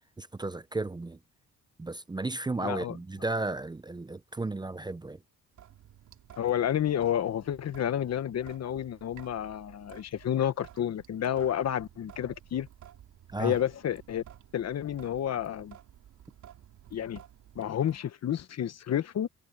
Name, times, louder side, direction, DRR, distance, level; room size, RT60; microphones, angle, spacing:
voice 1, 0.2-1.2 1.8-5.2 13.3-13.6, right 2 dB, 15° right, 0.7 m, -34 dB
voice 2, 2.6-3.0 6.4-12.7 13.4-14.2 14.5-15.7 16.9-17.2 17.5-19.3, left 10 dB, 60° left, 1.3 m, -30 dB
Sink (filling or washing) / Drip, 5.5-18.0, right 11 dB, 75° right, 2.9 m, -54 dB
cardioid pair, 90°, 30 cm